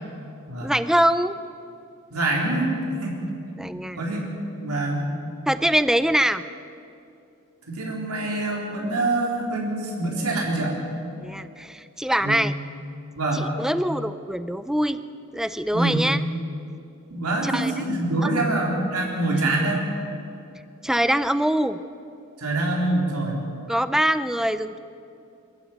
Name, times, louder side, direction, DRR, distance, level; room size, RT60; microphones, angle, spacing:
voice 1, 0.6-1.4 3.6-4.0 5.5-6.4 11.2-12.5 13.3-15.0 15.3-16.2 17.4-17.7 18.2-18.4 19.4-19.5 20.8-21.8 23.7-24.8, right 1 dB, ahead, 12 dB, 0.5 m, -23 dB
voice 2, 2.1-2.7 3.0-3.2 4.0-4.2 4.6-5.1 7.7-10.8 12.2-12.5 13.1-13.5 15.7-16.0 17.1-19.8 22.4-23.3, right 2 dB, 80° right, -1 dB, 4.0 m, -25 dB
23.0 x 14.0 x 9.4 m, 2.7 s
head